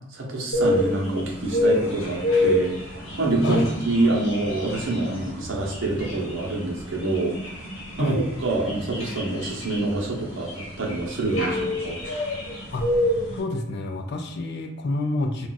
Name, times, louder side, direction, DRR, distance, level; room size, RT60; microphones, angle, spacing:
voice 1, 0.1-7.4 8.0-12.0, right 2 dB, 65° right, -2 dB, 0.8 m, -26 dB
sound 1, 0.5-13.4, left 1 dB, 75° left, 1.3 m, -27 dB
voice 2, 13.3-15.5, left 2 dB, 55° left, 4 dB, 0.4 m, -28 dB
2.4 x 2.3 x 3.8 m, 0.87 s
head